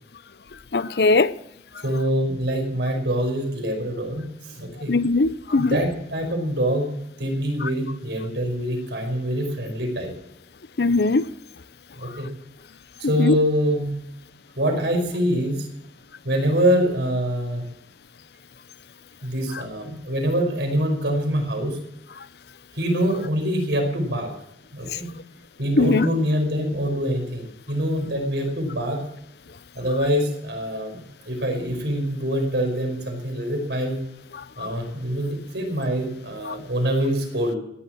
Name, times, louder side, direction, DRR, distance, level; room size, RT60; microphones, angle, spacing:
voice 1, 0.7-1.3 4.9-5.7 10.8-11.2 13.2-13.3 25.8-26.0, left 3 dB, 65° left, 0.6 m, -19 dB
voice 2, 1.8-4.9 5.6-10.1 12.0-12.3 13.0-13.9 14.6-15.7 16.2-17.6 19.2-21.8 22.7-24.3 24.7-25.1 25.6-29.0 29.7-34.0 34.6-37.6, equal, 80° right, 5.1 m, -25 dB
17.0 x 11.0 x 6.3 m
head